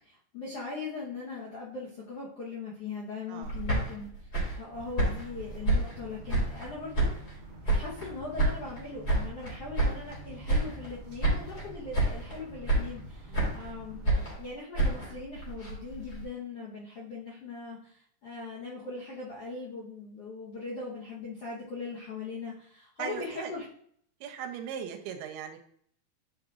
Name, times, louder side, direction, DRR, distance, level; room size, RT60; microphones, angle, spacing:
voice 1, 0.0-4.3 4.6-23.6, left 4 dB, 75° left, -5 dB, 1.4 m, -40 dB
sound 1, 3.4-6.7 6.9-8.1 8.4-10.2 10.5-11.0 11.2-11.7 11.9-12.4 12.7-13.7 14.1-16.2, right 2 dB, 25° left, 3.0 m, -29 dB
sound 2, 4.7-14.3, right 2 dB, 50° right, 0.7 m, -47 dB
voice 2, 23.0-23.5 24.2-25.6, right 7 dB, 90° right, 4 dB, 2.8 m, -38 dB
10.5 x 5.0 x 2.5 m, 0.63 s
omnidirectional pair, 4.6 m